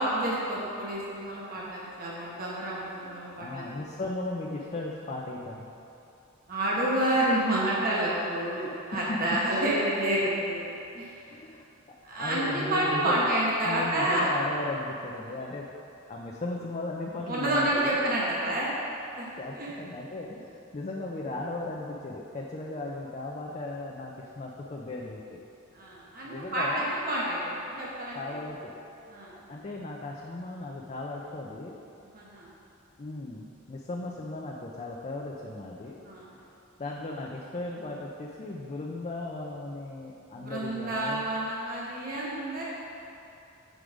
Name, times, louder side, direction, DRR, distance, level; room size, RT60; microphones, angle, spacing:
voice 1, 0.0-3.7 6.5-11.2 12.0-14.3 17.3-18.7 19.2-19.3 19.5-19.7 25.7-28.4 29.1-29.4 32.1-32.5 36.0-36.4 40.3-42.6, right 1 dB, 45° right, -5 dB, 1.2 m, -29 dB
voice 2, 3.4-5.7 8.6-9.2 11.3-13.2 13.6-15.7 16.1-18.0 19.3-25.4 26.2-26.9 28.1-28.7 29.3-31.8 33.0-36.0 36.8-41.2, left 2 dB, 30° left, -2 dB, 0.5 m, -37 dB
7.8 x 4.8 x 5.0 m, 2.7 s
head